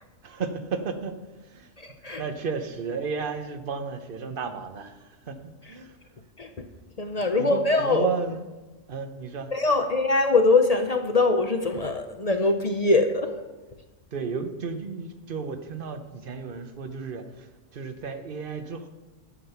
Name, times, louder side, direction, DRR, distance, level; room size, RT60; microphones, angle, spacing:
voice 1, 0.2-1.7 2.2-6.1 7.4-8.5 8.9-9.9 14.1-18.9, right 5 dB, 45° right, 8 dB, 1.0 m, -33 dB
voice 2, 1.8-2.2 6.4-6.7 7.0-8.1 9.5-13.4, left 3 dB, 40° left, 6 dB, 0.6 m, -23 dB
11.0 x 7.4 x 5.7 m, 1.2 s
omnidirectional pair, 1.4 m